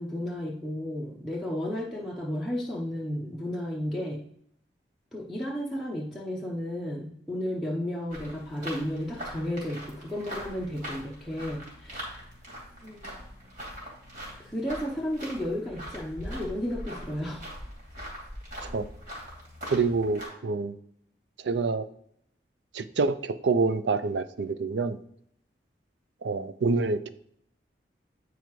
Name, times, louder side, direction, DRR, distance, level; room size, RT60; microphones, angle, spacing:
voice 1, 0.0-4.2 5.1-12.1 12.8-13.2 14.4-17.5, left 1 dB, ahead, -4 dB, 0.8 m, -33 dB
sound 1, 8.1-20.3, equal, 45° right, 2.6 m, -42 dB
voice 2, 19.7-20.8 21.4-21.9 22.7-25.0 26.2-27.1, right 4 dB, 80° right, 13 dB, 0.5 m, -27 dB
9.0 x 4.7 x 3.1 m, 0.69 s
head